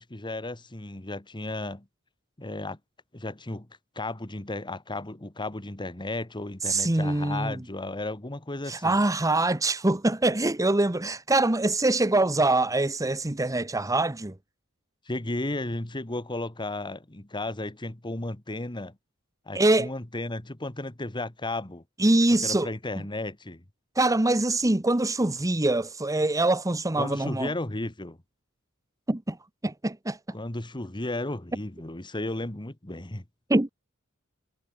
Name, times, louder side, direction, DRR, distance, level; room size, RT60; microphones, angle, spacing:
voice 1, 0.0-1.8 2.4-2.8 3.1-3.7 3.9-9.0 15.1-18.9 19.4-21.8 22.4-23.6 27.0-28.2 30.3-33.2, left 2 dB, 20° left, 1.6 m, -34 dB
voice 2, 6.7-7.6 8.7-14.3 19.5-19.9 22.0-22.7 24.0-27.5 29.1-29.4 29.6-30.2 33.5-33.7, right 2 dB, 15° right, 0.9 m, -24 dB
head